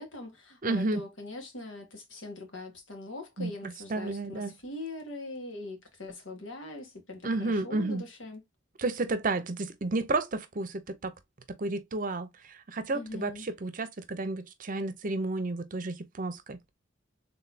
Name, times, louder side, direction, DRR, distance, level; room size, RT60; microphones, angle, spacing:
voice 1, 0.0-8.4 12.9-13.4, left 2 dB, 85° left, 1.7 m, -42 dB
voice 2, 0.6-1.0 3.4-4.5 7.2-8.0 8.8-11.1 11.6-16.6, right 2 dB, 45° right, 0.7 m, -32 dB
4.1 x 3.6 x 2.7 m
head